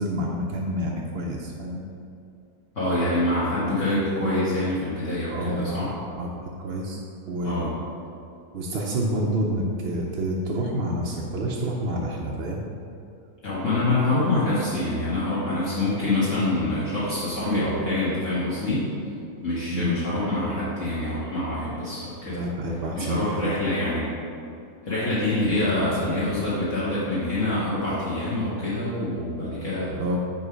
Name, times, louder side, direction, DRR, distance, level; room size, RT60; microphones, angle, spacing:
voice 1, 0.0-1.8 5.3-7.7 8.5-12.6 19.7-20.0 22.3-23.6 25.5-26.4 30.0-30.2, right 1 dB, 55° right, -2 dB, 0.7 m, -29 dB
voice 2, 2.7-5.9 7.4-7.7 13.4-18.9 19.4-22.4 22.9-24.0 24.8-30.0, left 2 dB, 55° left, -10 dB, 1.8 m, -25 dB
9.4 x 3.2 x 4.9 m, 2.5 s
omnidirectional pair, 1.6 m